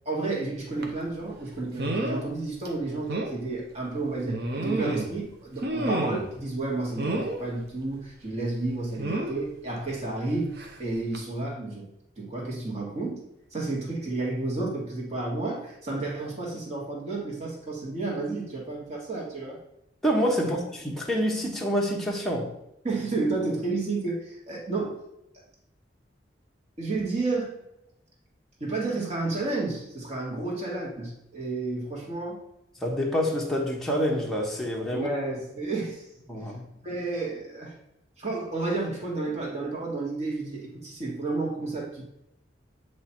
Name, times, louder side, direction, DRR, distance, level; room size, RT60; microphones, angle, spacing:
voice 1, 0.1-10.5 10.8-11.9 12.2-13.2 13.5-19.6 20.4-20.5 22.8-25.0 26.8-27.5 28.6-32.4 34.9-36.0 36.3-36.4 36.8-37.8 38.2-42.1, right 3 dB, 40° right, -3 dB, 1.8 m, -31 dB
sound 1, 0.8-1.0 1.8-2.2 2.6-2.7 3.1-3.3 4.3-5.2 5.6-6.3 7.0-7.4 9.0-9.4 10.6-10.8 11.1-11.2, right 2 dB, 60° right, 0.9 m, -29 dB
voice 2, 20.0-20.6 20.8-22.5 32.8-35.1 36.3-36.6, equal, ahead, -2 dB, 0.9 m, -27 dB
7.6 x 3.1 x 4.4 m, 0.83 s
head